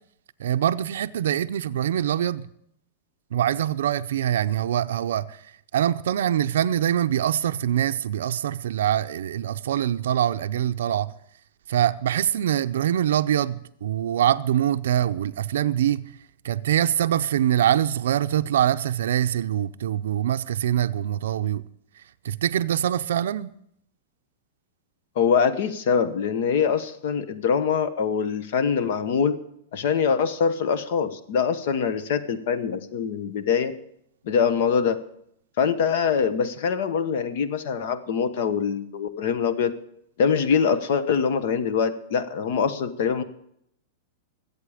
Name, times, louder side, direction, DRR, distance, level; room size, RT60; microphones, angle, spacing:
voice 1, 0.4-2.5 3.3-11.1 11.7-16.1 16.4-21.7 22.0-23.5, right 11 dB, 80° right, 0.5 m, -24 dB
voice 2, 25.1-29.3 29.7-33.7 34.2-35.0 35.6-39.7 40.2-43.2, left 6 dB, 50° left, 1.1 m, -23 dB
22.5 x 8.5 x 5.0 m
supercardioid pair, 175°, 0 cm